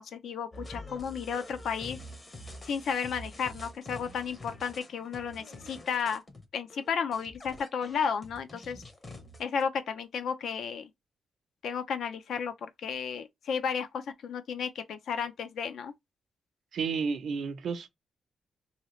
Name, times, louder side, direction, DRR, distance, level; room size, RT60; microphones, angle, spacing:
voice 1, 0.0-2.0 2.6-6.2 6.5-8.8 9.4-10.9 11.6-15.9, left 6 dB, 75° left, 0.5 m, -33 dB
sound 1, 0.5-9.6, left 1 dB, 25° left, 0.7 m, -46 dB
voice 2, 16.7-17.9, right 5 dB, 65° right, 0.5 m, -31 dB
2.8 x 2.7 x 3.1 m
wide cardioid pair, 145°, 0 cm